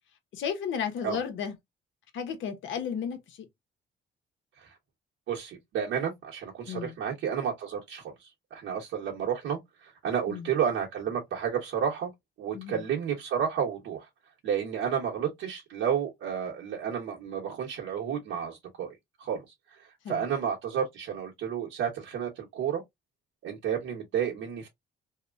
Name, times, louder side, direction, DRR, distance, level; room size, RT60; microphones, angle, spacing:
voice 1, 0.3-1.5 2.1-3.4 6.7-7.0 10.3-10.5 12.5-12.8 20.0-20.2, left 7 dB, 75° left, 0.9 m, -33 dB
voice 2, 5.3-12.1 12.4-14.1 14.4-19.4 19.8-22.8 23.4-24.7, right 8 dB, 85° right, 1.0 m, -31 dB
2.9 x 2.1 x 2.4 m
cardioid pair, 90°, 20 cm